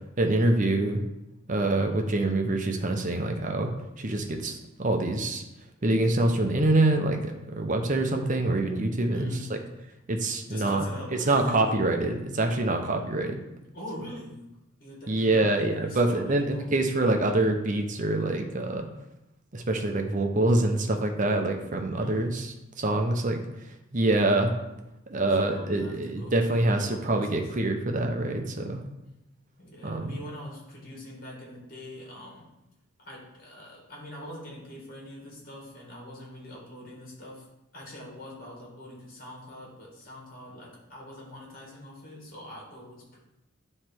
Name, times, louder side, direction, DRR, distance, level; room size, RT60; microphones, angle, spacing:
voice 1, 0.2-1.0 1.5-3.7 4.0-5.4 5.8-9.3 10.1-10.8 11.3-13.4 15.1-18.9 19.5-23.4 23.9-24.5 25.1-28.8 29.8-30.2, right 2 dB, 40° right, 4 dB, 0.8 m, -25 dB
voice 2, 1.7-2.1 9.1-9.7 10.5-11.7 13.7-14.4 14.8-16.7 22.0-22.4 25.2-27.5 29.6-32.5 33.0-37.5 37.7-43.2, left 1 dB, 45° left, -3 dB, 2.2 m, -43 dB
9.4 x 3.3 x 4.5 m, 0.92 s
head